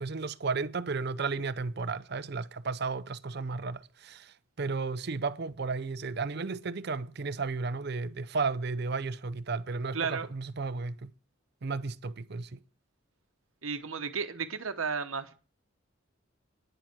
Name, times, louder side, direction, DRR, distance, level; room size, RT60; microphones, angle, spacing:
voice 1, 0.0-11.1 11.6-12.6, right 4 dB, 50° right, 0.6 m, -33 dB
voice 2, 9.9-10.3 13.6-15.3, right 5 dB, 75° right, 1.0 m, -33 dB
10.0 x 7.4 x 7.6 m
head